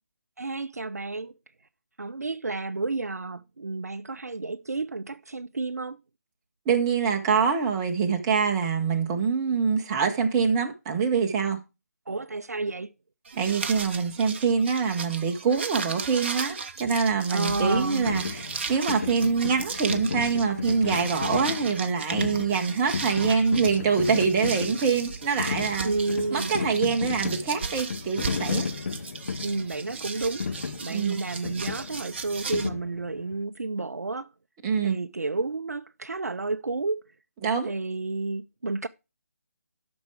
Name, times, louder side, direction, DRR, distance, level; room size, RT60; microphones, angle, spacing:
voice 1, 0.4-1.3 2.0-6.0 12.1-12.9 17.3-18.1 25.8-26.5 29.4-34.3 34.8-37.0 37.6-38.9, right 3 dB, 75° right, 0.5 m, -31 dB
voice 2, 6.6-11.6 13.4-25.9 26.3-28.7 30.9-31.2 34.6-35.0 37.4-37.7, right 5 dB, 20° right, 1.3 m, -25 dB
sound 1, 13.3-32.7, right 5 dB, 40° right, 0.9 m, -36 dB
sound 2, 17.6-33.4, left 5 dB, 50° left, 1.0 m, -34 dB
11.5 x 6.1 x 4.8 m
figure-of-eight pair, 150°, 9 cm